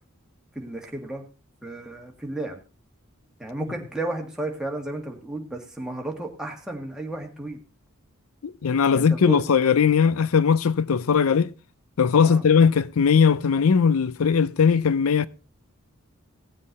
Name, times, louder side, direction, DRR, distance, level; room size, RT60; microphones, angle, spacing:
voice 1, 0.6-1.3 1.6-2.6 3.4-7.6 8.9-9.4 12.2-12.4, right 2 dB, 5° right, 1.8 m, -33 dB
voice 2, 8.4-11.5 12.0-15.3, left 6 dB, 80° left, 0.5 m, -19 dB
17.0 x 7.5 x 4.0 m
head